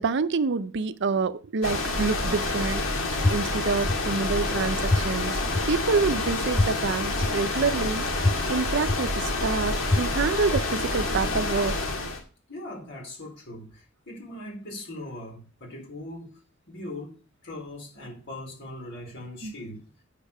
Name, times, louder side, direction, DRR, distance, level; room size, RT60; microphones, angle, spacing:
voice 1, 0.0-5.4 5.7-8.1 8.5-11.8 12.0-12.1 19.4-19.5, right 4 dB, 60° right, 0.5 m, -27 dB
sound 1, 1.6-12.2, left 2 dB, 80° left, 2.2 m, -28 dB
sound 2, 3.2-3.3 3.9-4.0 4.9-5.0 5.5-5.6 6.6-6.7 7.2-7.3 8.2-8.3 8.9-9.0 9.9-10.0 10.5-10.6, left 2 dB, 15° left, 0.4 m, -21 dB
voice 2, 12.5-16.4 16.7-17.2 17.4-19.8, left 1 dB, 60° left, 4.2 m, -40 dB
8.1 x 6.9 x 5.4 m
head